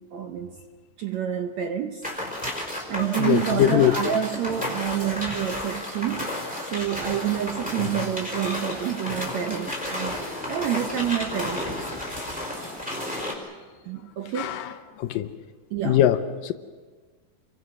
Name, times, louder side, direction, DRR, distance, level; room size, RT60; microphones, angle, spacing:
voice 1, 0.1-0.6 1.0-2.1 2.9-6.3 6.6-10.2 10.5-12.0 13.9-14.5 15.7-16.0, right 10 dB, 70° right, 5 dB, 1.8 m, -28 dB
sound 1, 2.0-13.3, left 1 dB, ahead, 4.8 m, -32 dB
voice 2, 3.2-4.2 7.8-7.9 14.4-15.3 15.8-16.5, left 11 dB, 75° left, 9 dB, 2.4 m, -22 dB
29.0 x 23.0 x 6.3 m, 1.4 s
omnidirectional pair, 4.3 m